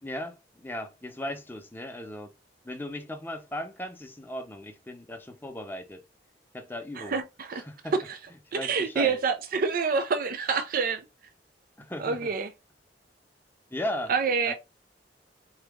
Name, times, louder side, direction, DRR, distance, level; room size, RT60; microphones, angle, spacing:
voice 1, 0.0-2.3 2.6-6.0 6.5-7.2 7.7-7.9 8.5-9.2 11.8-12.3 13.7-14.1 14.5-14.6, left 1 dB, 10° left, 0.7 m, -37 dB
voice 2, 7.0-7.6 8.1-8.2 8.5-11.0 12.0-12.5 14.1-14.5, right 5 dB, 55° right, 0.5 m, -27 dB
3.9 x 2.8 x 3.5 m
head